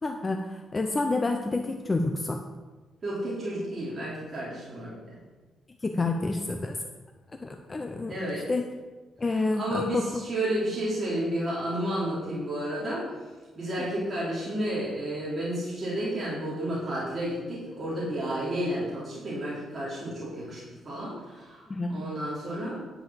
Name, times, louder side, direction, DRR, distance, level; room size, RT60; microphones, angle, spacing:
voice 1, 0.0-2.4 5.8-6.8 7.4-8.6 9.2-10.2 13.9-14.0 21.7-22.0, left 3 dB, 20° left, 4 dB, 0.6 m, -29 dB
voice 2, 3.0-5.2 8.1-8.5 9.3-13.3 13.5-22.8, right 1 dB, 25° right, -8 dB, 3.1 m, -31 dB
10.5 x 5.5 x 7.4 m, 1.2 s
cardioid pair, 175°, 0 cm